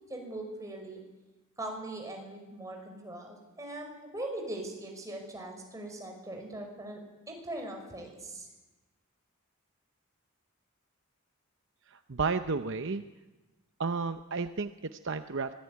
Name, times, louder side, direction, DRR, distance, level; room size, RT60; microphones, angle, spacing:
voice 1, 0.1-1.0 1.6-7.0 7.3-8.5, right 1 dB, 15° right, 1 dB, 5.6 m, -40 dB
voice 2, 11.9-13.0 13.8-15.6, right 4 dB, 55° right, 9 dB, 0.8 m, -32 dB
24.5 x 18.5 x 9.6 m, 1.1 s
head